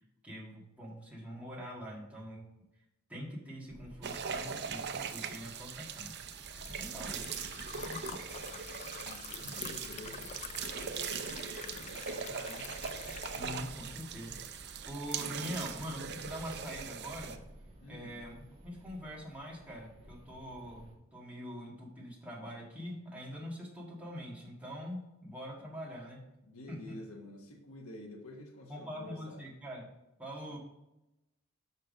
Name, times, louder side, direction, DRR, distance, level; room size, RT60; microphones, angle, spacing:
voice 1, 0.2-2.4 3.1-6.2 6.6-7.4 7.8-8.2 13.3-17.3 17.9-18.4 18.6-26.2 26.7-27.0 28.7-29.9 30.2-30.6, equal, 5° right, -5 dB, 2.0 m, -44 dB
sound 1, 3.7-20.9, right 1 dB, 25° right, 1.6 m, -54 dB
sound 2, 4.0-17.4, right 6 dB, 50° right, 0.6 m, -41 dB
Liquid, 5.2-13.5, left 8 dB, 30° left, 0.3 m, -47 dB
voice 2, 8.9-12.8 17.8-18.1 26.5-29.4 30.5-30.6, left 1 dB, 80° left, 2 dB, 1.1 m, -50 dB
6.4 x 5.6 x 5.2 m, 0.90 s
head